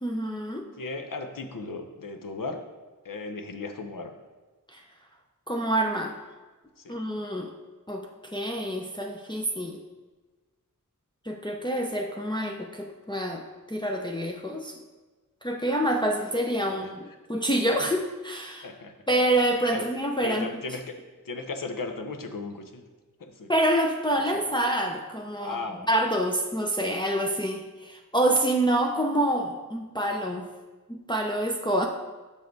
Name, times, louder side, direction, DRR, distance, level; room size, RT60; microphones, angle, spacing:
voice 1, 0.0-0.7 4.7-4.8 5.5-6.2 6.9-7.5 7.9-8.1 8.3-9.8 11.2-13.4 13.7-14.8 15.4-18.7 19.1-20.5 23.5-25.6 25.9-30.5 30.9-31.9, right 1 dB, 15° left, 0 dB, 0.6 m, -27 dB
voice 2, 0.8-2.6 3.0-4.1 6.8-6.9 16.7-16.9 18.6-18.9 19.7-19.8 20.2-20.8 21.3-22.9 23.2-23.5 25.4-25.9, left 3 dB, 80° left, 5 dB, 0.8 m, -36 dB
6.7 x 5.1 x 4.6 m, 1.3 s
wide cardioid pair, 60°, 33 cm